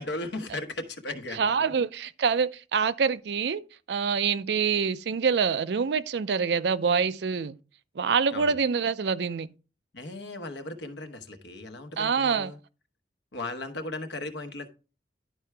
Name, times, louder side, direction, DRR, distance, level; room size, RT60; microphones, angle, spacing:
voice 1, 0.0-1.5 8.3-8.5 9.9-12.6 13.3-14.7, left 2 dB, 75° left, 1.0 m, -36 dB
voice 2, 1.3-3.6 3.9-7.6 8.0-9.5 12.0-12.5, right 6 dB, 70° right, 0.4 m, -26 dB
11.0 x 4.7 x 3.3 m
head